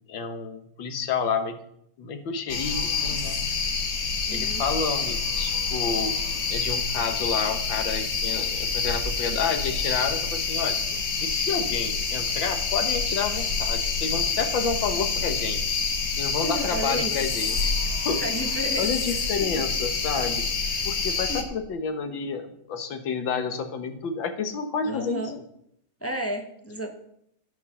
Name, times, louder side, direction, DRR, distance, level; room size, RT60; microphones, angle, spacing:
voice 1, 0.1-1.6 2.0-3.4 4.3-6.2 6.5-10.8 11.2-15.8 16.1-18.2 18.8-20.5 20.9-25.2, left 5 dB, 85° left, 8 dB, 1.9 m, -30 dB
sound 1, 2.5-21.4, left 5 dB, 60° left, 2.0 m, -27 dB
voice 2, 4.3-4.6 16.4-17.1 18.2-18.9 20.8-20.9 21.3-21.4 24.8-25.3 26.0-26.9, right 1 dB, 10° left, 4 dB, 0.7 m, -32 dB
13.0 x 6.1 x 6.6 m, 0.75 s
omnidirectional pair, 2.0 m